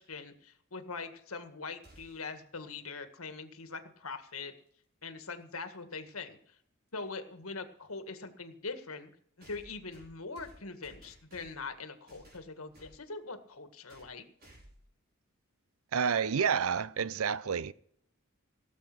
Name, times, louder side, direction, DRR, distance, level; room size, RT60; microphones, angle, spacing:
voice 1, 0.0-4.5 5.0-6.5 6.9-9.1 9.4-14.3, left 4 dB, 90° left, 1.8 m, -42 dB
sound 1, 1.8-2.4 4.5-4.6 5.7-5.8 9.4-11.7 12.1-13.0 13.9-14.1 14.4-14.9, right 1 dB, 50° right, 5.2 m, -57 dB
voice 2, 15.9-17.7, right 6 dB, 80° right, 0.5 m, -29 dB
17.5 x 7.4 x 6.0 m
head